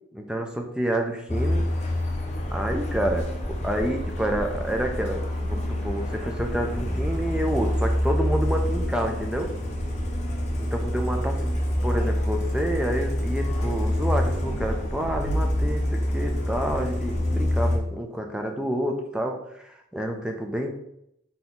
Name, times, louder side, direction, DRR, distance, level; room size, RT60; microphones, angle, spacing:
voice 1, 0.1-1.7 2.5-9.5 10.6-11.6 11.8-20.7, right 1 dB, 5° right, 3 dB, 0.4 m, -29 dB
Truck, 1.3-17.8, left 1 dB, 35° left, 0.6 m, -27 dB
3.8 x 2.9 x 3.8 m, 0.78 s
head